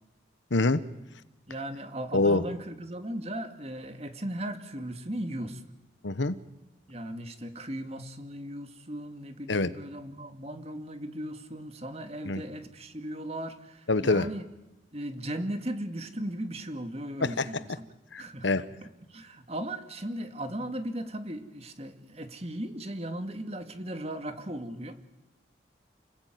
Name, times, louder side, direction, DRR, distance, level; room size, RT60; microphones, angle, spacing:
voice 1, 0.5-0.8 2.1-2.4 6.0-6.4 9.5-9.7 12.2-12.4 13.9-14.3 17.2-17.5 18.1-18.7, left 3 dB, 80° left, 1.2 m, -25 dB
voice 2, 1.5-5.7 6.9-14.5 14.9-17.9 18.2-18.5 19.1-25.0, right 1 dB, 35° right, 2.3 m, -37 dB
30.0 x 20.0 x 9.4 m
head